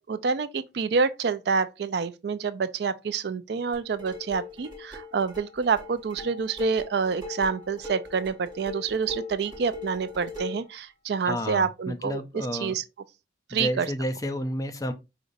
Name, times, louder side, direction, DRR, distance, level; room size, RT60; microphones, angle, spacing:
voice 1, 0.0-12.8 13.5-13.9, right 5 dB, 60° right, 0.4 m, -27 dB
sound 1, 3.7-10.7, left 4 dB, 20° right, 2.3 m, -40 dB
voice 2, 11.2-12.7 13.5-14.9, equal, 20° left, 0.5 m, -31 dB
5.1 x 3.9 x 2.6 m
head